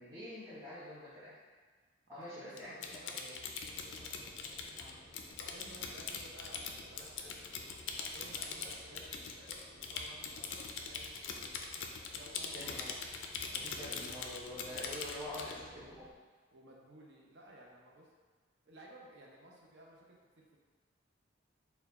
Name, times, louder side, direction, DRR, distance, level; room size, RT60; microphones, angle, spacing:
voice 1, 0.0-1.3 2.1-2.8 3.1-3.4 4.8-5.0 12.5-13.0 13.5-16.1, left 1 dB, 20° right, -15 dB, 1.2 m, -46 dB
voice 2, 2.1-4.5 5.4-7.6 8.0-11.6 12.1-12.7 15.2-15.8 16.5-18.1 18.7-20.6, right 1 dB, 65° right, -2 dB, 0.8 m, -56 dB
Typing, 2.6-15.6, left 5 dB, 90° left, 0.4 m, -42 dB
sound 1, 3.6-16.1, left 1 dB, 20° left, 0.4 m, -59 dB
4.5 x 2.3 x 4.1 m, 1.4 s
head